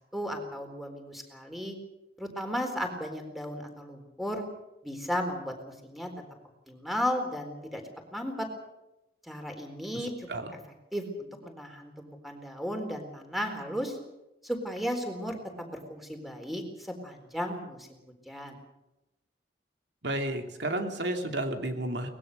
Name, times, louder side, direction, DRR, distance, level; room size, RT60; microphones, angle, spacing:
voice 1, 0.1-1.8 2.2-4.4 4.8-6.1 6.7-7.8 8.1-8.5 9.2-10.3 10.9-14.0 14.4-17.9 18.3-18.6, equal, ahead, 4 dB, 4.0 m, -35 dB
voice 2, 9.9-10.5 20.0-22.1, right 1 dB, 90° right, 5 dB, 2.9 m, -32 dB
23.0 x 20.0 x 6.8 m, 0.95 s
head